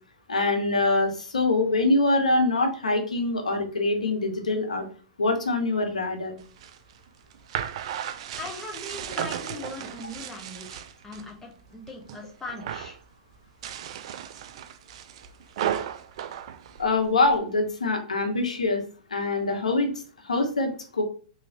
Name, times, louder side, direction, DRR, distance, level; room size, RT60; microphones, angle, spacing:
voice 1, 0.3-4.8 5.2-6.3 16.8-18.8 19.1-19.9 20.2-21.0, left 2 dB, 90° left, 4 dB, 0.8 m, -24 dB
sound 1, 6.4-11.3 11.7-12.2 12.5-13.0 13.5-17.4, right 10 dB, 60° right, 0.3 m, -35 dB
voice 2, 8.4-13.0, left 2 dB, 10° left, -1 dB, 1.1 m, -40 dB
3.0 x 2.8 x 2.8 m, 0.41 s
hypercardioid pair, 115°, 4 cm